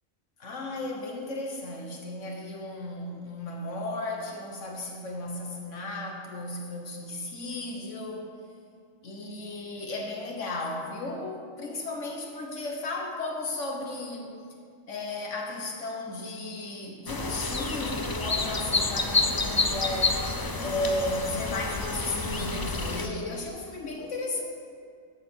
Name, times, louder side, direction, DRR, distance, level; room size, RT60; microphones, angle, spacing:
voice 1, 0.4-8.3 9.0-14.3 14.9-20.2 20.6-24.4, left 2 dB, 70° left, 1 dB, 1.5 m, -34 dB
sound 1, 17.1-23.1, left 3 dB, 30° left, 0.4 m, -29 dB
11.5 x 6.5 x 8.0 m, 2.3 s
omnidirectional pair, 1.3 m